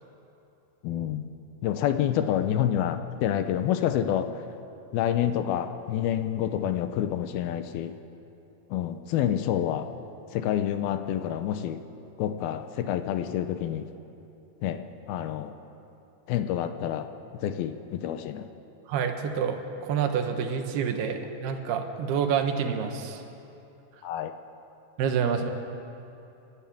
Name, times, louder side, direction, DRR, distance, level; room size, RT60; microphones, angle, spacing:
voice 1, 0.8-1.2 1.6-4.3 4.9-7.9 8.7-9.9 10.3-11.8 12.2-13.9 14.6-14.8 15.1-15.5 16.3-17.1 17.4-18.4 24.0-24.3, left 10 dB, 80° left, 9 dB, 2.6 m, -28 dB
voice 2, 18.9-23.2 25.0-25.5, right 7 dB, 80° right, 5 dB, 3.3 m, -28 dB
28.0 x 11.5 x 8.6 m, 2.8 s
omnidirectional pair, 4.5 m